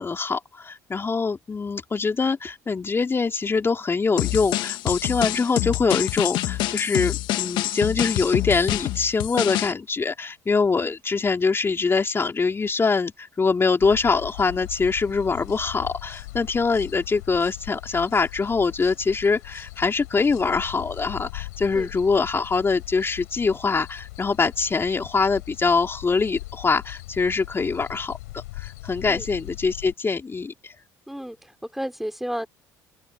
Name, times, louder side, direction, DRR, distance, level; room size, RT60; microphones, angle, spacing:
voice 1, 0.0-30.7, left 4 dB, 30° left, 3.2 m, -24 dB
sound 1, 4.2-9.7, left 16 dB, 65° left, 1.8 m, -26 dB
sound 2, 13.8-29.9, left 19 dB, 80° left, 6.6 m, -40 dB
voice 2, 31.1-32.5, equal, ahead, 5.1 m, -32 dB
open air
hypercardioid pair, 60°, 9 cm